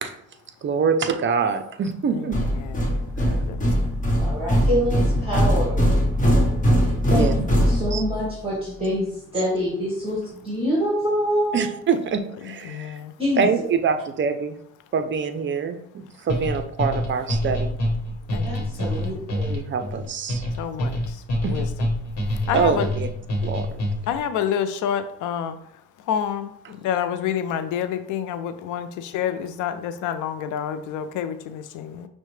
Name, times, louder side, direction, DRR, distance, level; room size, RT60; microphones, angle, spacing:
voice 1, 0.6-2.4 7.1-7.3 7.9-8.0 11.5-12.8 13.4-14.6 14.9-17.8 18.7-18.8 19.5-20.5 21.4-21.6 22.5-23.1 23.4-23.8, right 5 dB, 40° right, 8 dB, 0.5 m, -25 dB
sound 1, 2.3-8.3, equal, 25° left, 1.1 m, -21 dB
voice 2, 2.6-2.9 3.5-3.7 12.6-13.1 18.3-18.5 18.8-19.2 20.6-21.2 21.5-21.7 22.5-22.9 24.1-25.6 26.1-32.1, left 9 dB, 90° left, 10 dB, 0.5 m, -28 dB
voice 3, 4.2-5.8 7.1-7.3 7.6-11.6 13.2-13.5 18.4-19.6, equal, 20° right, -6 dB, 1.3 m, -26 dB
sound 2, 16.3-24.2, left 1 dB, 60° left, 1.1 m, -26 dB
5.5 x 2.1 x 3.1 m, 0.71 s
cardioid pair, 90°, 30 cm